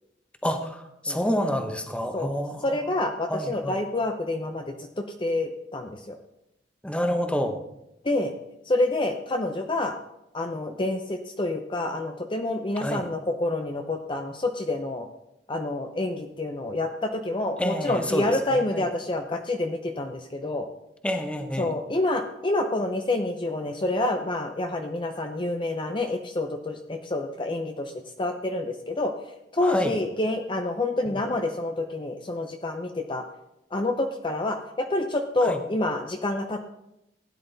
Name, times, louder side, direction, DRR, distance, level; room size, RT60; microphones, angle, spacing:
voice 1, 0.4-2.8 3.3-3.8 6.8-7.6 12.8-13.0 17.6-18.8 21.0-21.7 29.6-29.9 31.1-31.2 35.4-35.6, equal, 5° left, 6 dB, 1.0 m, -28 dB
voice 2, 2.6-4.9 5.2-6.2 8.0-8.3 8.7-9.9 10.3-15.1 15.5-20.7 21.6-27.9 28.2-29.1 29.5-33.2 33.7-36.7, left 2 dB, 30° left, 5 dB, 0.7 m, -28 dB
16.0 x 10.0 x 4.0 m, 0.88 s
head